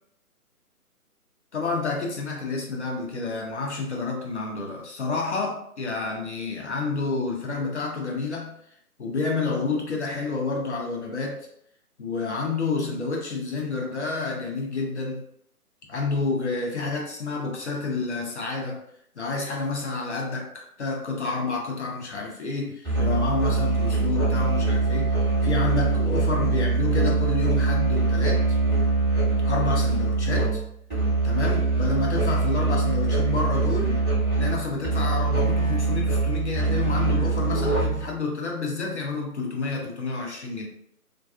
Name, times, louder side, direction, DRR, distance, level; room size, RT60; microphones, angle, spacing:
voice 1, 1.5-8.5 9.0-11.5 12.0-15.2 15.9-18.8 19.2-28.6 29.4-30.6 31.2-34.0 34.4-40.7, left 3 dB, 50° left, 0 dB, 0.6 m, -29 dB
Musical instrument, 22.8-38.2, right 4 dB, 5° left, 0.6 m, -23 dB
2.4 x 2.3 x 2.3 m, 0.69 s
figure-of-eight pair, 145°, 45 cm